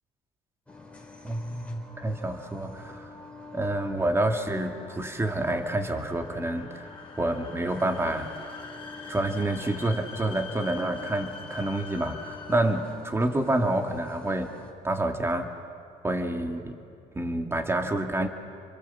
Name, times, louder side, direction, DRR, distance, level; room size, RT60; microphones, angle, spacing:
sound 1, 0.7-14.7, left 3 dB, 5° left, 4.0 m, -47 dB
voice 1, 1.2-3.1 3.5-8.3 9.1-14.6 14.8-15.5 16.0-16.8 17.1-18.3, right 1 dB, 15° right, 4 dB, 2.2 m, -28 dB
sound 2, 2.7-13.1, left 5 dB, 30° left, 3.3 m, -46 dB
29.5 x 23.5 x 7.2 m, 2.5 s
cardioid pair, 110°, 17 cm